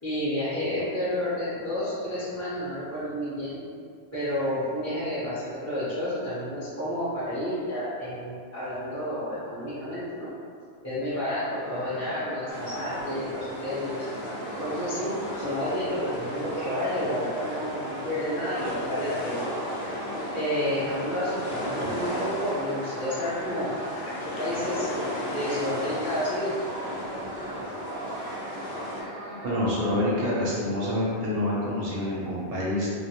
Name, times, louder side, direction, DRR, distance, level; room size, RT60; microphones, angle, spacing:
voice 1, 0.0-3.6 4.1-10.3 10.8-14.1 14.6-19.4 19.9-24.9 25.2-26.5, left 1 dB, 20° left, -13 dB, 0.5 m, -30 dB
sound 1, 11.1-29.5, right 1 dB, 85° right, 1.0 m, -39 dB
sound 2, 12.5-29.0, left 1 dB, 75° left, 0.8 m, -35 dB
voice 2, 29.4-32.9, left 1 dB, 65° right, -6 dB, 0.7 m, -27 dB
2.2 x 2.1 x 2.8 m, 2.2 s
omnidirectional pair, 1.1 m